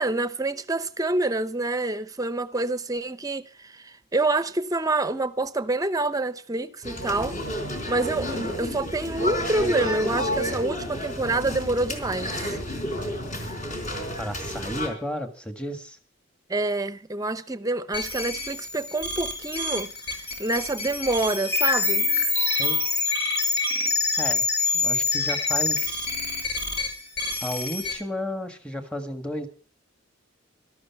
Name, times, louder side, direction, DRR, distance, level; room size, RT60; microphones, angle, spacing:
voice 1, 0.0-7.4 7.9-12.6 16.5-19.9 20.4-22.1, right 2 dB, 20° right, 0.8 m, -27 dB
sound 1, 6.8-14.9, equal, 40° left, 4.0 m, -31 dB
voice 2, 14.2-16.0 22.4-22.8 24.2-24.4 24.7-26.1 27.4-29.5, equal, 5° left, 1.6 m, -33 dB
sound 2, 17.9-27.9, left 3 dB, 60° left, 4.5 m, -26 dB
13.5 x 13.0 x 5.8 m
head